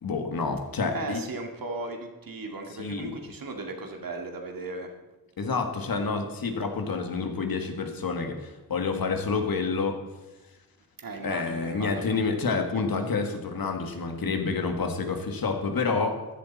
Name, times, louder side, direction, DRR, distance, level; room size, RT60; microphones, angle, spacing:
voice 1, 0.0-1.2 2.8-3.2 5.4-10.0 11.2-16.3, left 4 dB, 75° left, 5 dB, 1.9 m, -28 dB
voice 2, 0.9-4.9 11.0-12.2, right 3 dB, 70° right, 3 dB, 2.2 m, -36 dB
14.5 x 11.5 x 4.2 m, 1.1 s
cardioid pair, 65°, 35 cm